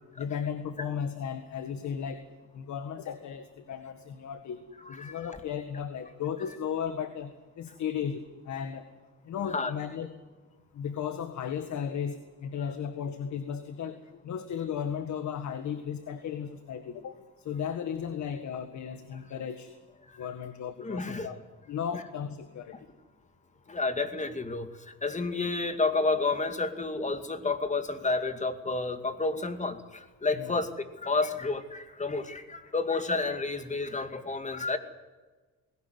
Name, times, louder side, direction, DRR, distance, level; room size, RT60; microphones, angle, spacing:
voice 1, 0.2-2.2 2.5-4.6 4.9-8.9 9.3-10.1 10.7-19.7 20.2-21.4 21.7-22.9 30.4-30.6, left 8 dB, 70° left, 9 dB, 1.7 m, -35 dB
voice 2, 20.8-21.3 23.7-24.7 25.0-30.7 31.0-34.8, left 3 dB, 25° left, 9 dB, 2.4 m, -30 dB
20.0 x 17.5 x 9.5 m, 1.3 s
cardioid pair, 90°, 30 cm